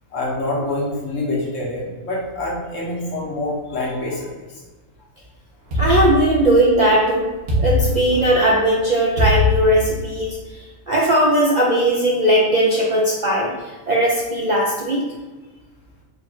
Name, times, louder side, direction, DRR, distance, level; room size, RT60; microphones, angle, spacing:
voice 1, 0.1-4.6 6.2-6.3, left 2 dB, 70° left, -4 dB, 1.4 m, -26 dB
voice 2, 5.7-7.3 7.6-10.4 10.9-15.0, right 1 dB, 50° right, -4 dB, 0.5 m, -18 dB
sound 1, 5.7-6.8 7.5-8.5 9.2-10.3, left 2 dB, 80° right, 1.6 m, -21 dB
3.9 x 2.5 x 4.3 m, 1.2 s
omnidirectional pair, 1.4 m